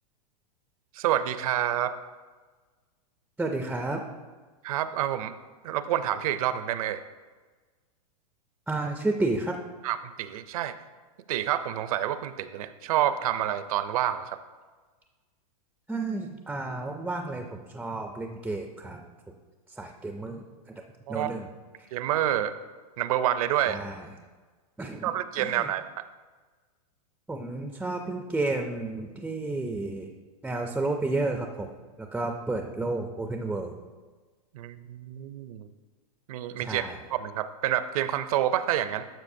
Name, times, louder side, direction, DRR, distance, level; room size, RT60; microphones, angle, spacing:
voice 1, 0.9-1.9 4.6-5.3 5.6-7.0 9.8-10.7 11.3-14.4 21.1-21.3 21.9-22.5 23.0-23.8 25.0-26.0 34.5-35.7 36.3-36.8 37.1-39.0, right 11 dB, 65° right, 12 dB, 0.5 m, -28 dB
voice 2, 3.4-4.0 8.7-9.6 15.9-19.3 19.7-20.8 21.1-21.5 21.8-21.9 23.6-24.1 24.8-25.1 25.4-25.7 27.3-30.1 30.4-31.7 32.0-33.8 36.6-37.0, right 2 dB, 5° right, 3 dB, 0.3 m, -31 dB
12.0 x 6.3 x 2.6 m, 1.4 s
hypercardioid pair, 140°, 20 cm